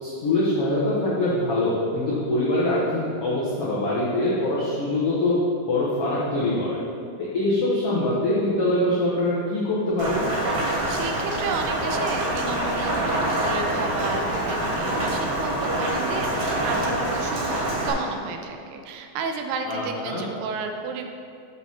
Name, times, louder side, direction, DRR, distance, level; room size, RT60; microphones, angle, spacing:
voice 1, 0.0-5.3 5.7-6.8 7.3-10.2 19.7-20.2, left 1 dB, 75° left, -8 dB, 1.3 m, -24 dB
Rain, 10.0-17.9, right 1 dB, 65° right, 3.4 m, -25 dB
voice 2, 10.6-21.1, right 4 dB, 90° right, 5 dB, 2.8 m, -32 dB
6.8 x 6.3 x 5.6 m, 2.6 s
omnidirectional pair, 4.5 m